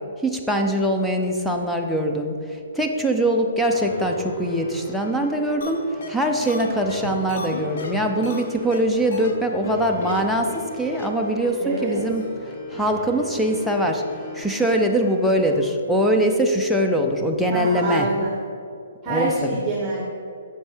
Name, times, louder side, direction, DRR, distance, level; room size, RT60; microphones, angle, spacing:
voice 1, 0.2-12.2 12.7-14.0 14.3-18.1 19.1-19.6, right 1 dB, ahead, 2 dB, 0.6 m, -22 dB
sound 1, 3.7-15.7, left 1 dB, 20° left, 1.5 m, -38 dB
sound 2, 5.6-5.7 6.0-6.1 6.4-8.4 8.7-8.8 9.1-9.3 9.6-9.7 10.0-10.2 10.5-10.6 10.9-11.1 11.4-11.5 11.8-11.9, left 3 dB, 65° left, 1.0 m, -33 dB
voice 2, 11.6-12.0 17.5-18.3 19.0-20.0, right 2 dB, 15° right, -4 dB, 1.3 m, -26 dB
7.4 x 5.4 x 4.5 m, 2.4 s
hypercardioid pair, 150°, 0 cm